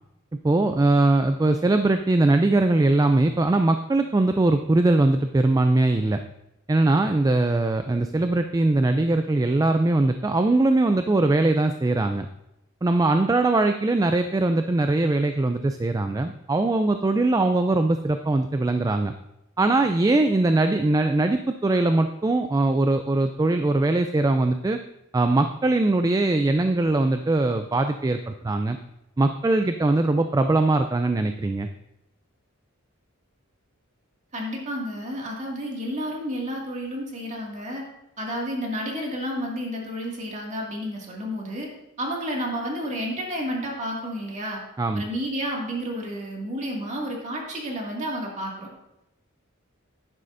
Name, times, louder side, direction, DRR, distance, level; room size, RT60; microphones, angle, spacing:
voice 1, 0.4-6.2 6.7-12.3 12.8-19.1 19.6-24.8 25.1-28.8 29.2-31.7 44.8-45.0, right 2 dB, 15° right, 7 dB, 0.3 m, -21 dB
voice 2, 34.3-37.8 38.2-41.7 42.0-44.6 44.9-48.7, equal, 35° right, -2 dB, 2.1 m, -31 dB
11.0 x 9.8 x 2.6 m, 0.86 s
head